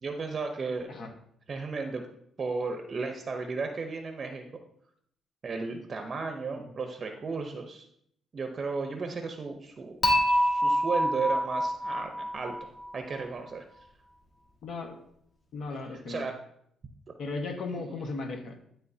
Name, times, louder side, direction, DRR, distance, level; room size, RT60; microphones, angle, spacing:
voice 1, 0.0-0.9 1.5-2.0 2.4-4.5 5.4-7.9 8.3-9.9 10.3-13.6 16.1-16.3 17.7-18.0, right 4 dB, 40° right, 4 dB, 0.7 m, -34 dB
Dishes pots and pans / Chink clink, 10.0-13.2, equal, 45° left, 1.9 m, -27 dB
voice 2, 14.6-15.0 15.5-16.2 17.2-18.6, left 3 dB, 65° left, 3 dB, 1.3 m, -36 dB
11.0 x 3.7 x 2.7 m, 0.70 s
cardioid pair, 90°, 0 cm